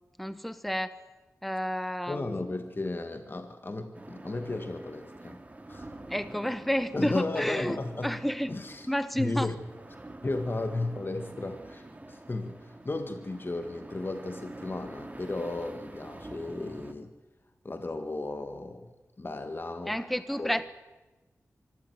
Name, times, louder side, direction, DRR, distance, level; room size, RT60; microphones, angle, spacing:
voice 1, 0.2-1.0 1.4-2.6 6.1-7.8 8.0-8.5 8.9-9.5 19.9-20.6, equal, ahead, 13 dB, 1.0 m, -30 dB
voice 2, 2.1-5.4 5.7-5.9 6.9-8.2 8.5-8.9 9.2-9.6 10.2-17.1 17.6-20.0 20.4-20.5, left 2 dB, 40° left, 8 dB, 1.9 m, -34 dB
sound 1, 3.9-16.9, right 2 dB, 25° right, 2.0 m, -46 dB
24.5 x 13.0 x 9.9 m, 1.1 s
wide cardioid pair, 65°, 5 cm